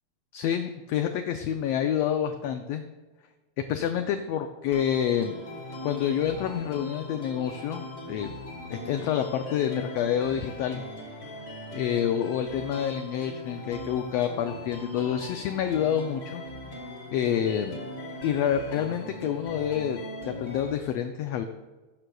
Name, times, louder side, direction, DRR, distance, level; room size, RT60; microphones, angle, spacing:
voice 1, 0.3-2.8 3.7-5.4 5.8-8.3 8.7-10.8 11.7-16.4 17.1-17.9 18.2-20.0 20.3-21.4, left 9 dB, 85° left, 6 dB, 1.4 m, -28 dB
sound 1, 4.7-20.7, left 1 dB, 35° left, 1.1 m, -40 dB
17.5 x 7.9 x 2.3 m, 1.2 s
omnidirectional pair, 3.4 m